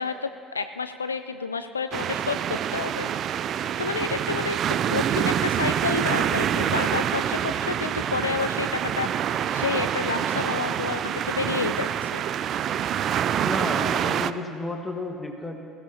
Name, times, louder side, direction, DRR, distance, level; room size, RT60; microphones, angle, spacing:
voice 1, 0.0-3.1 3.8-4.6 4.9-12.3, left 5 dB, 85° left, 10 dB, 0.3 m, -30 dB
sound 1, 1.9-14.3, right 9 dB, 50° right, 0.4 m, -26 dB
voice 2, 13.4-15.6, left 2 dB, 15° left, 3 dB, 1.6 m, -32 dB
21.0 x 15.5 x 2.9 m, 2.5 s
figure-of-eight pair, 60°, 0 cm